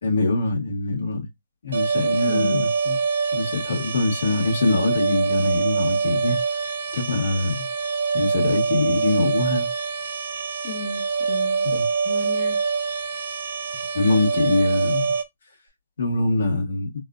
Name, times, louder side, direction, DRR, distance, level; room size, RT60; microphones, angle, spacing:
voice 1, 0.0-1.3 1.6-3.0 3.3-6.6 6.9-7.6 8.1-9.7 11.6-11.8 13.9-15.1 16.0-16.9, left 2 dB, 75° left, 1.9 m, -23 dB
sound 1, 1.7-15.2, right 5 dB, 90° right, 1.2 m, -25 dB
voice 2, 2.3-2.7 10.6-12.6, left 3 dB, 45° left, 1.1 m, -33 dB
4.0 x 2.5 x 2.4 m
hypercardioid pair, 160°, 0 cm